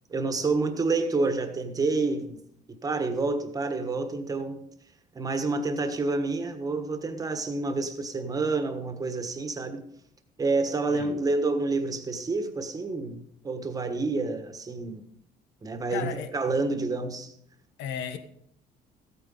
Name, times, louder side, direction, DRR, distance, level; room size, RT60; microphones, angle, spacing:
voice 1, 0.1-2.4 2.8-4.6 5.1-9.8 10.4-15.0 15.6-17.3, right 3 dB, 20° right, 1.4 m, -28 dB
voice 2, 15.9-16.3 17.8-18.2, left 9 dB, 80° left, 1.4 m, -35 dB
15.0 x 8.8 x 5.5 m
cardioid pair, 150°, 18 cm